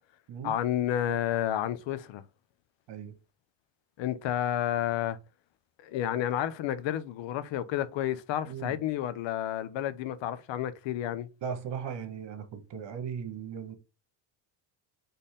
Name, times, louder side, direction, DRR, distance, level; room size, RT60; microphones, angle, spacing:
voice 1, 0.4-2.2 4.0-5.2 5.8-11.3, left 11 dB, 65° left, 0.8 m, -30 dB
voice 2, 11.4-13.7, right 7 dB, 60° right, 1.4 m, -37 dB
4.2 x 3.5 x 3.5 m
supercardioid pair, 90°, 49 cm